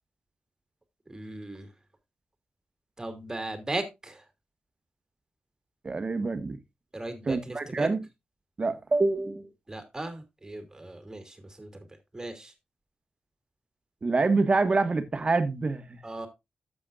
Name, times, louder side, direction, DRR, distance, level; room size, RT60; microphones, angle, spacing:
voice 1, 1.1-1.7 3.0-4.2 6.9-7.9 9.7-11.7 12.1-12.5 16.0-16.3, right 2 dB, 20° right, 2.7 m, -37 dB
voice 2, 5.8-6.6 7.2-8.0 8.6-9.5 14.0-16.0, right 3 dB, 35° right, 1.5 m, -26 dB
12.0 x 7.8 x 2.5 m
cardioid pair, 90°, 3 cm